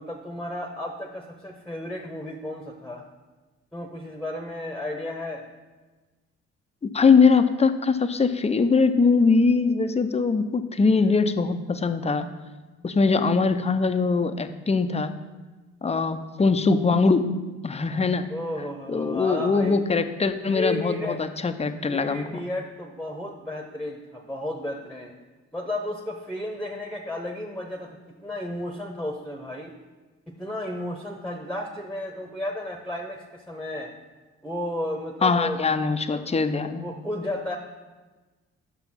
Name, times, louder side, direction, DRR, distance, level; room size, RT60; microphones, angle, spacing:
voice 1, 0.0-3.0 3.7-5.4 18.3-19.8 20.5-21.2 21.9-25.2 25.5-28.0 28.2-29.7 30.3-33.9 34.4-35.6 36.1-36.4 36.8-37.6, left 1 dB, ahead, 2 dB, 1.1 m, -33 dB
voice 2, 6.8-12.3 12.8-15.1 15.8-17.3 17.6-18.3 18.9-22.2 35.2-36.8, left 4 dB, 20° left, 9 dB, 0.7 m, -22 dB
6.0 x 5.8 x 5.8 m, 1.3 s
hypercardioid pair, 50°, 33 cm